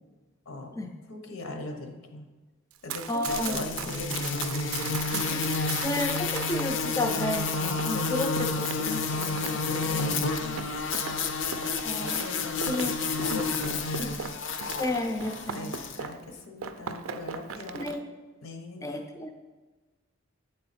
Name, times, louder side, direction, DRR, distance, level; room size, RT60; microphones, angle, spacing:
voice 1, 1.1-2.3 2.8-5.9 7.8-8.4 9.6-10.0 10.4-10.6 11.5-11.6 12.0-14.2 15.5-17.9 18.4-18.8, left 2 dB, 85° left, 4 dB, 0.9 m, -40 dB
Run, 2.7-6.7 7.2-16.3 16.6-18.0, right 7 dB, 90° right, 0.4 m, -39 dB
voice 2, 3.1-3.7 5.8-10.3 11.8-12.2 12.7-12.9 13.3-13.5 14.8-15.8 17.7-18.0 18.8-19.3, left 1 dB, 15° left, 4 dB, 0.3 m, -32 dB
sound 1, 3.3-16.0, left 4 dB, 65° left, 0.5 m, -30 dB
8.5 x 3.8 x 4.2 m, 1.2 s
head